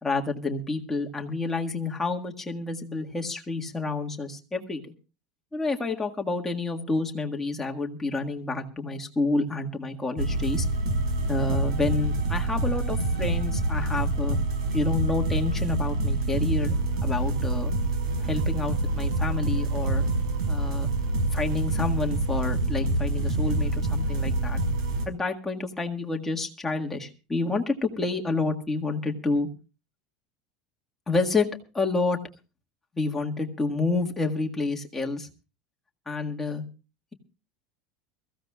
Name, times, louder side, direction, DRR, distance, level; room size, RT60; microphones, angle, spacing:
voice 1, 0.0-4.9 5.5-10.6 11.3-14.4 14.7-17.7 18.2-20.0 20.5-20.9 21.3-24.6 25.0-29.5 31.1-31.5 31.7-32.2 32.9-35.3 36.0-36.6, left 3 dB, 10° left, 1 dB, 1.7 m, -29 dB
sound 1, 10.2-25.1, right 2 dB, 85° right, 4.8 m, -26 dB
23.0 x 15.0 x 2.4 m, 0.32 s
supercardioid pair, 160°, 3 cm